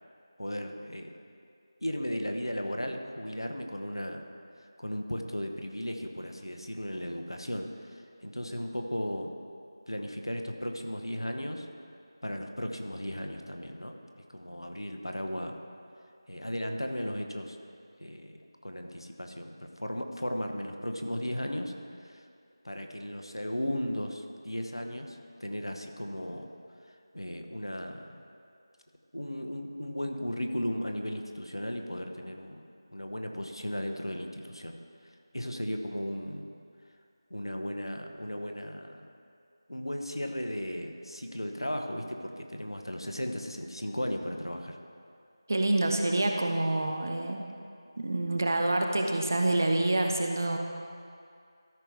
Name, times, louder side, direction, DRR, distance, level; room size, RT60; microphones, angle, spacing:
voice 1, 0.4-1.1 1.8-4.2 4.8-9.3 9.9-11.7 12.2-15.6 16.3-17.6 18.0-22.2 22.6-26.5 26.9-28.2 29.1-34.8 35.0-36.5 37.3-39.1 39.7-44.8, equal, 75° left, 4 dB, 0.9 m, -36 dB
voice 2, 45.5-47.4 48.0-50.6, right 2 dB, 40° right, 3 dB, 0.7 m, -27 dB
13.5 x 5.6 x 3.5 m, 2.4 s
figure-of-eight pair, 165°, 2 cm